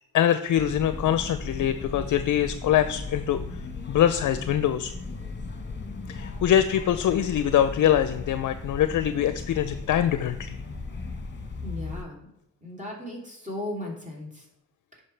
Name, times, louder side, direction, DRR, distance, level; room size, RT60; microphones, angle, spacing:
voice 1, 0.1-3.4 3.9-4.9 6.1-10.6, left 10 dB, 60° left, 11 dB, 0.5 m, -23 dB
sound 1, 0.5-12.0, left 3 dB, 35° left, 1.3 m, -37 dB
voice 2, 11.6-12.2 12.6-14.4, left 1 dB, 20° right, -2 dB, 3.1 m, -36 dB
10.5 x 5.5 x 3.3 m, 0.86 s
cardioid pair, 65°, 34 cm